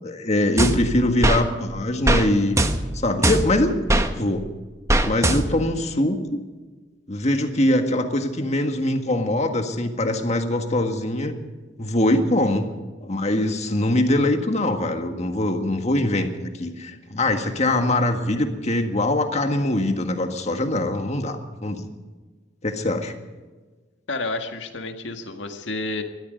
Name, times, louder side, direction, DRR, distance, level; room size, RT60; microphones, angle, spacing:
voice 1, 0.0-2.6 2.9-3.8 4.1-4.4 5.0-6.4 7.1-11.3 11.8-12.7 13.0-21.8 22.6-23.1, left 1 dB, 35° left, 6 dB, 1.7 m, -23 dB
sound 1, 0.6-1.4 2.1-2.3 2.6-4.1 4.9-5.7, right 1 dB, 15° right, 1.1 m, -21 dB
voice 2, 24.1-26.0, left 2 dB, 75° left, 5 dB, 1.8 m, -30 dB
20.5 x 13.5 x 5.2 m, 1.3 s
head